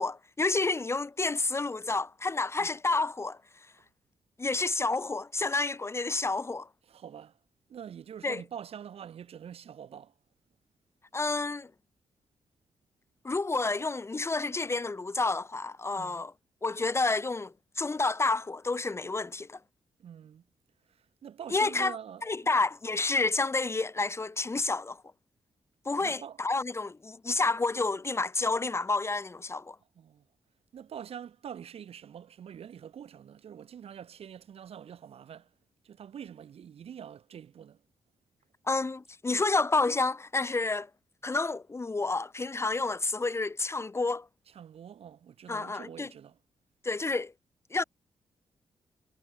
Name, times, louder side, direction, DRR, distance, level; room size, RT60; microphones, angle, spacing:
voice 1, 0.0-3.4 4.4-6.7 8.2-8.4 11.1-11.7 13.2-16.3 16.6-19.6 21.5-22.0 22.2-25.0 25.8-29.8 38.7-40.9 41.2-44.3 45.5-46.1 46.8-47.3 47.7-47.8, left 3 dB, 25° left, 1.0 m, -29 dB
voice 2, 6.9-7.4 7.7-10.1 15.9-16.3 20.0-20.4 21.2-22.5 26.0-26.4 29.9-30.2 30.7-35.5 35.8-37.8 44.5-46.4, right 8 dB, 75° right, 6.8 m, -45 dB
cardioid pair, 80°, 10 cm